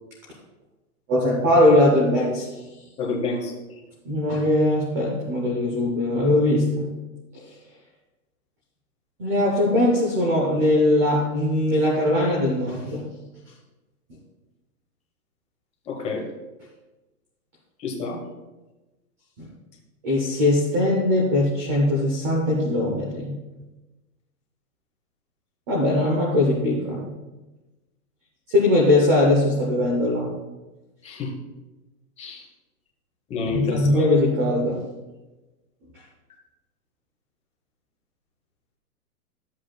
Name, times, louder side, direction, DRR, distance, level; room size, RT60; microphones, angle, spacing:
voice 1, 1.1-2.5 4.0-6.9 7.3-7.4 9.2-13.0 19.4-19.5 20.0-23.3 25.7-27.1 28.5-30.3 33.5-34.8, left 1 dB, 10° right, -2 dB, 0.4 m, -20 dB
voice 2, 3.0-3.5 15.9-16.3 17.8-18.2 31.0-31.3 32.2-32.4 33.3-34.1, left 4 dB, 15° left, 0 dB, 1.0 m, -28 dB
13.0 x 7.6 x 2.2 m, 1.1 s
hypercardioid pair, 150°, 45 cm